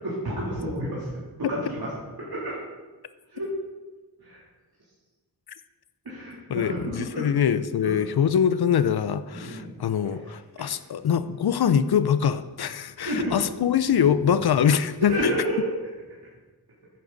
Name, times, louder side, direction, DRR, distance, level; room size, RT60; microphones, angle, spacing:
voice 1, 0.0-1.1 1.4-1.9 2.2-2.6 3.3-3.5 4.2-4.4 6.0-7.3 7.8-7.9 9.3-9.7 10.0-10.1 10.6-10.7 13.0-13.3 15.0-15.7, equal, 70° right, -7 dB, 3.1 m, -30 dB
voice 2, 6.5-15.3, left 8 dB, 75° left, 13 dB, 0.6 m, -23 dB
13.5 x 10.0 x 4.0 m, 1.2 s
wide cardioid pair, 130°, 38 cm